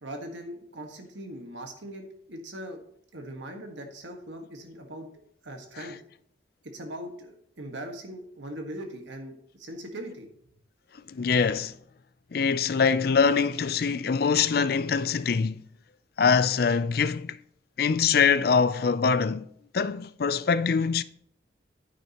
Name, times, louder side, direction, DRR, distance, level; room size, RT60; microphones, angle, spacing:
voice 1, 0.0-2.8 3.1-5.1 5.4-6.0 6.6-10.3, right 1 dB, 75° right, 1.6 m, -40 dB
voice 2, 11.1-11.7 12.3-15.6 16.2-17.4 17.8-19.5 19.7-21.0, left 5 dB, 50° left, 0.4 m, -23 dB
9.7 x 9.2 x 3.0 m
head